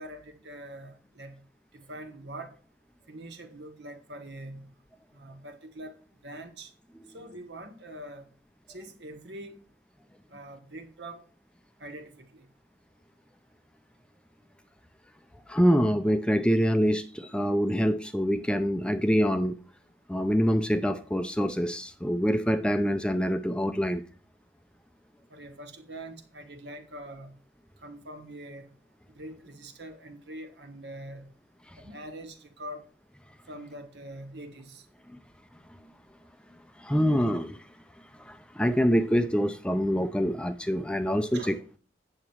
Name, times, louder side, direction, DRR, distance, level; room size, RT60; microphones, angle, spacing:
voice 1, 0.0-1.4 1.7-2.5 3.1-4.7 5.1-6.7 7.1-8.3 8.7-9.6 10.3-11.2 11.8-12.5 25.3-27.4 27.8-28.7 29.1-31.3 31.8-32.8 33.5-34.8 41.3-41.6, right 1 dB, 80° right, 1.7 m, -43 dB
voice 2, 15.5-19.6 20.1-24.0 36.8-37.6 38.2-41.6, equal, 5° left, 0.5 m, -25 dB
8.7 x 7.3 x 4.5 m
head